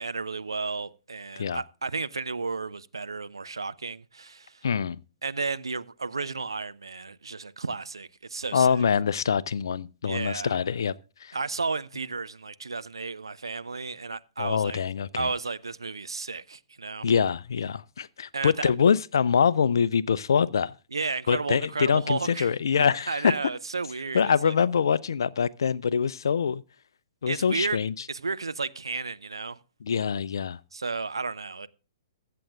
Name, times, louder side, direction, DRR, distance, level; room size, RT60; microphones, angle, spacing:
voice 1, 0.0-4.6 5.2-8.9 10.1-10.6 11.3-14.8 15.1-17.1 18.3-18.7 20.9-22.5 22.8-24.5 27.3-27.8 28.1-29.6 30.7-31.7, right 4 dB, 70° right, 0.5 m, -33 dB
voice 2, 4.6-5.0 8.5-10.9 11.2-11.4 14.4-15.3 17.0-20.7 21.3-23.3 24.1-26.6 27.2-27.9 29.8-30.6, left 6 dB, 60° left, 0.5 m, -24 dB
22.5 x 7.7 x 2.4 m
figure-of-eight pair, 115°, 2 cm